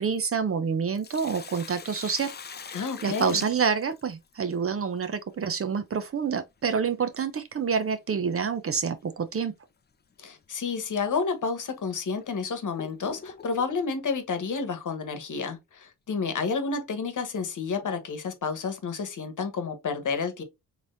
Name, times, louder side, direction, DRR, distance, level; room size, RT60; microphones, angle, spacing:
voice 1, 0.0-2.3 3.0-9.5, right 6 dB, 35° right, 0.6 m, -27 dB
Sink (filling or washing), 0.7-4.3 6.7-6.8 8.7-8.9 9.4-9.5 10.3-10.4 11.1-11.2 11.9-13.8, left 6 dB, 25° left, 0.5 m, -43 dB
voice 2, 2.7-3.4 10.2-20.4, left 5 dB, 50° left, 1.2 m, -30 dB
3.8 x 3.1 x 2.6 m
cardioid pair, 75°, 38 cm